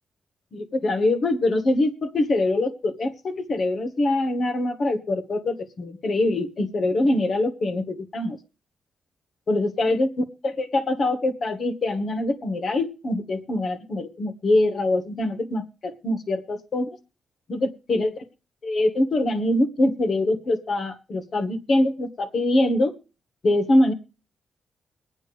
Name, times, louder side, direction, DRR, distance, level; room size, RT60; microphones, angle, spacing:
voice 1, 0.5-8.4 9.5-10.1 10.4-16.9 17.5-18.1 18.6-22.9 23.4-23.9, left 2 dB, 50° left, 7 dB, 1.6 m, -23 dB
22.5 x 8.9 x 3.4 m, 0.32 s
cardioid pair, 100°, 0 cm